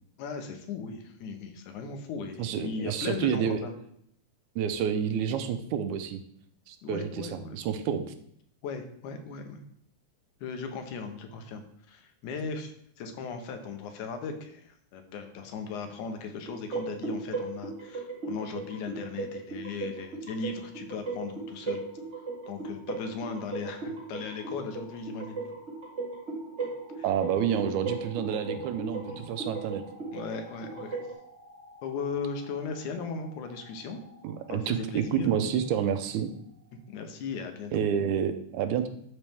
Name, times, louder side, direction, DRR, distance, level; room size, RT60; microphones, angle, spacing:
voice 1, 0.2-3.7 6.8-7.6 7.9-8.0 8.6-9.6 10.4-21.8 22.5-25.4 27.0-27.1 29.1-29.2 30.1-31.1 31.8-34.0 34.5-35.3 36.9-37.8, left 5 dB, 75° left, 6 dB, 2.3 m, -37 dB
voice 2, 2.4-3.7 4.6-6.2 6.7-8.0 27.0-29.8 34.2-36.3 37.7-38.9, right 8 dB, 80° right, 9 dB, 2.0 m, -29 dB
sound 1, 16.4-31.1, right 3 dB, 45° right, 0.9 m, -37 dB
sound 2, 19.4-37.1, equal, 50° left, 3.2 m, -55 dB
12.0 x 4.2 x 3.5 m, 0.66 s
omnidirectional pair, 3.6 m